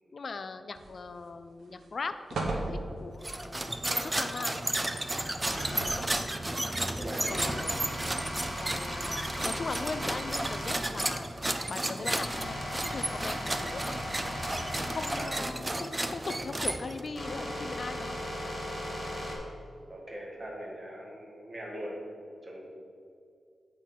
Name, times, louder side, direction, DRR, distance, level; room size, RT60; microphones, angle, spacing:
voice 1, 0.1-4.6 7.3-7.9 8.6-11.3 11.7-13.8 14.9-18.2, left 4 dB, 45° left, 10 dB, 0.4 m, -39 dB
sound 1, 0.7-1.3 1.7-1.8 2.3-3.3 5.4-6.2 7.0-7.1, right 2 dB, 90° right, 1.0 m, -36 dB
sound 2, 3.2-17.2, right 1 dB, 15° right, 0.4 m, -33 dB
sound 3, 5.5-5.8 7.3-10.8 11.4-19.3, equal, 15° left, 1.8 m, -38 dB
voice 2, 5.5-6.1 7.0-7.6 14.8-15.6 19.9-22.0 22.4-22.7, equal, 35° right, -2 dB, 1.8 m, -42 dB
8.1 x 4.5 x 5.7 m, 2.4 s
wide cardioid pair, 140°, 0 cm